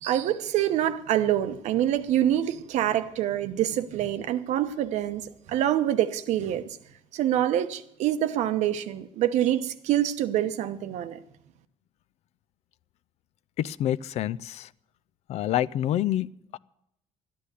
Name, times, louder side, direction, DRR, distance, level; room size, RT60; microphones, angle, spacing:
voice 1, 0.0-6.8 7.1-11.2, right 11 dB, 85° right, 1.0 m, -26 dB
voice 2, 13.6-14.7 15.3-16.6, left 12 dB, 70° left, 0.5 m, -27 dB
13.0 x 10.5 x 8.2 m
cardioid pair, 140°, 12 cm